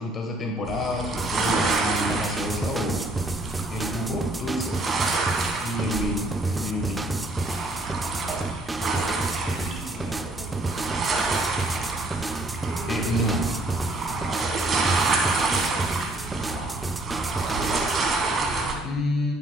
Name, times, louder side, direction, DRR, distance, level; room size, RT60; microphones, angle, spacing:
voice 1, 0.0-3.0 3.7-4.8 5.6-7.2 12.3-12.6 12.9-13.4 18.8-19.3, left 1 dB, 30° left, 1 dB, 1.2 m, -29 dB
sound 1, 0.6-18.7, right 3 dB, 30° right, 1.5 m, -28 dB
sound 2, 1.2-18.0, right 2 dB, 15° right, 0.4 m, -31 dB
voice 2, 8.1-11.0 12.6-13.6 14.1-16.8 17.5-18.9, left 1 dB, 85° left, -1 dB, 2.3 m, -41 dB
10.0 x 7.7 x 2.2 m, 1.1 s
supercardioid pair, 100°, 0 cm